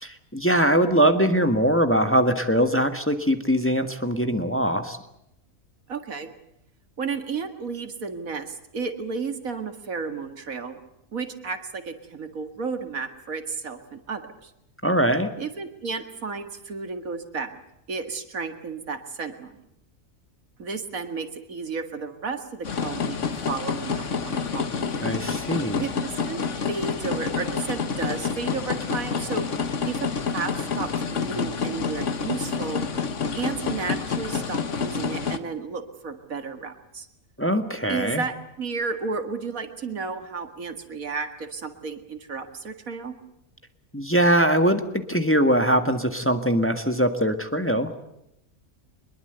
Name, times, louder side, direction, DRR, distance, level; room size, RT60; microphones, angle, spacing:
voice 1, 0.0-5.0 14.8-15.3 25.0-25.8 37.4-38.2 43.9-47.9, right 1 dB, 10° left, 7 dB, 1.6 m, -22 dB
voice 2, 5.9-6.3 7.0-10.8 11.1-14.5 15.4-17.6 17.9-19.6 20.6-23.2 23.5-24.7 25.8-26.4 26.7-29.5 29.8-32.8 33.4-37.1 37.9-43.2, right 4 dB, 85° right, 8 dB, 2.4 m, -32 dB
sound 1, 22.6-35.4, left 5 dB, 60° left, 1.7 m, -28 dB
23.5 x 21.5 x 8.1 m, 0.81 s
omnidirectional pair, 1.4 m